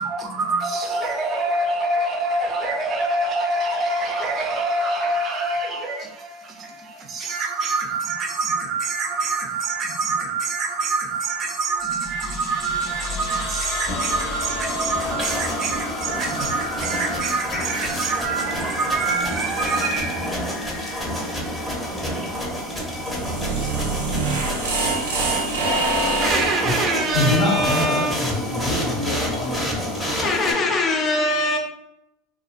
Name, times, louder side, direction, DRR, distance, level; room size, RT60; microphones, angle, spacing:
voice 1, 0.0-20.3 26.2-28.2, right 3 dB, 40° right, 0.6 m, -25 dB
sound 1, 11.8-22.4, left 2 dB, 60° left, 1.0 m, -33 dB
sound 2, 13.7-30.5, equal, 5° left, 0.8 m, -29 dB
sound 3, 22.9-26.8, right 3 dB, 85° right, 0.4 m, -25 dB
voice 2, 27.1-30.1, left 2 dB, 75° left, 0.7 m, -25 dB
voice 3, 30.2-31.6, left 2 dB, 35° left, 0.5 m, -22 dB
2.3 x 2.1 x 2.6 m
hypercardioid pair, 90°, 0 cm